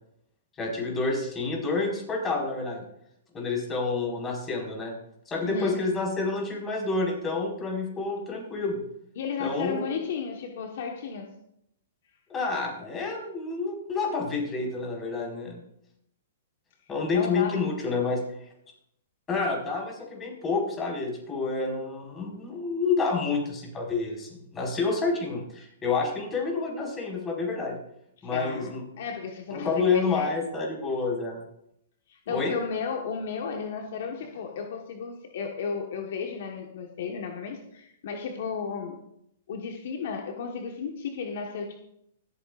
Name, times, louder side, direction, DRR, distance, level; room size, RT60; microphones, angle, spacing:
voice 1, 0.6-2.8 3.3-4.9 5.3-8.8 9.4-9.9 12.3-15.6 16.9-18.2 19.3-27.8 28.2-28.8 29.5-31.4 32.3-32.5, left 4 dB, 20° left, -2 dB, 4.7 m, -29 dB
voice 2, 5.4-5.9 9.2-11.3 17.1-17.6 28.2-30.3 32.1-39.0 39.5-41.8, left 6 dB, 65° left, 3 dB, 1.3 m, -34 dB
25.5 x 8.5 x 2.5 m, 0.75 s
hypercardioid pair, 130°, 0 cm